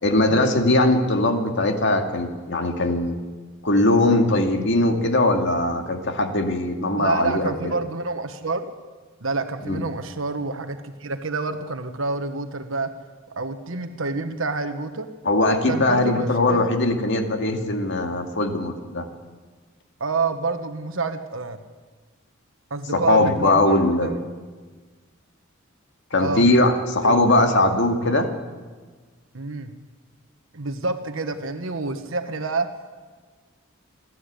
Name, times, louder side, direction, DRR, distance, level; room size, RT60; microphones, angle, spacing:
voice 1, 0.0-3.2 3.6-7.7 9.7-9.8 15.2-19.1 23.1-24.1 26.1-28.3, left 2 dB, 60° left, 4 dB, 2.2 m, -20 dB
voice 2, 7.0-8.7 9.2-12.9 13.3-15.1 15.7-16.7 20.0-21.6 22.7-24.1 26.2-26.5 27.0-27.1 29.3-29.7 30.5-32.7, right 3 dB, 70° right, 8 dB, 1.3 m, -28 dB
28.5 x 12.5 x 8.3 m, 1.4 s
head